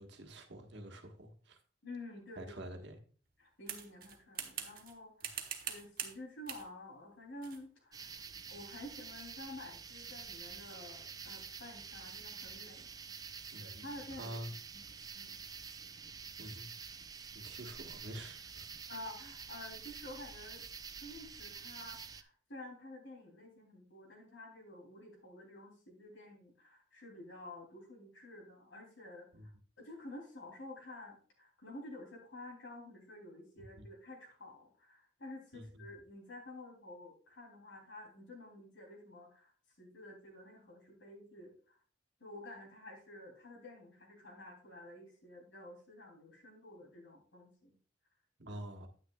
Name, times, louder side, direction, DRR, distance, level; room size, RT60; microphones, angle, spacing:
voice 1, 0.0-1.6 2.4-3.0 13.5-14.5 16.4-16.7 17.3-18.7 29.3-29.5 33.8-33.9 35.5-35.9 48.4-48.9, right 1 dB, 65° right, 1.5 m, -47 dB
voice 2, 1.8-2.5 3.4-5.4 5.7-12.9 13.6-14.4 14.7-14.9 15.1-15.4 18.9-20.7 21.0-29.5 29.8-39.5 39.8-41.8 42.2-47.7 48.5-48.6, left 1 dB, 75° left, 3.0 m, -50 dB
sound 1, 3.7-4.9 5.2-6.2 6.5-6.7 7.4-7.6, right 9 dB, 45° right, 1.1 m, -43 dB
sound 2, 7.9-22.2, right 6 dB, 20° right, 0.4 m, -48 dB
9.5 x 9.4 x 2.3 m
head